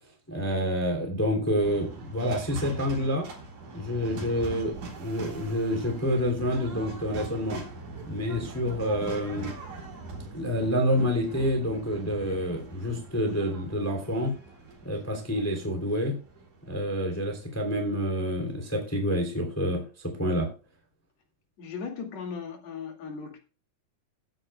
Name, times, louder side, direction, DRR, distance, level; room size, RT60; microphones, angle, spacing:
voice 1, 0.3-3.3 3.7-7.6 8.1-9.5 10.3-14.3 14.8-16.2 16.7-20.5, equal, 5° left, 2 dB, 2.4 m, -28 dB
sound 1, 1.6-17.8, right 3 dB, 80° right, 5.3 m, -42 dB
voice 2, 21.6-23.4, left 5 dB, 55° left, 4 dB, 3.3 m, -37 dB
18.0 x 9.3 x 2.2 m, 0.34 s
omnidirectional pair, 3.7 m